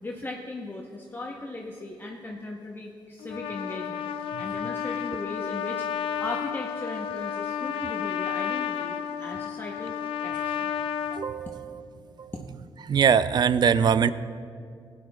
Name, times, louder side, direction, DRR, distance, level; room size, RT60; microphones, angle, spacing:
voice 1, 0.0-4.1 4.4-5.9 6.2-10.0 10.2-10.7 11.5-11.9, left 2 dB, 20° left, -1 dB, 0.9 m, -38 dB
Trumpet, 3.2-11.2, left 9 dB, 90° left, 0.4 m, -31 dB
voice 2, 11.1-11.8 12.2-12.3 12.8-14.1, right 7 dB, 50° right, 15 dB, 0.3 m, -22 dB
15.0 x 9.4 x 2.3 m, 2.3 s
cardioid pair, 70°, 9 cm